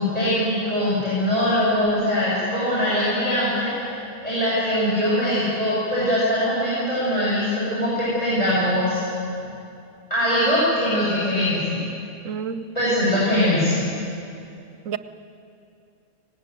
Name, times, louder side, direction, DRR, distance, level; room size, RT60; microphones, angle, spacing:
voice 1, 0.0-9.0 10.1-11.8 12.7-13.9, left 1 dB, 25° left, -10 dB, 7.1 m, -22 dB
voice 2, 12.2-12.7 14.9-15.0, right 7 dB, 65° right, 13 dB, 1.1 m, -29 dB
18.5 x 18.0 x 9.2 m, 2.6 s
omnidirectional pair, 1.5 m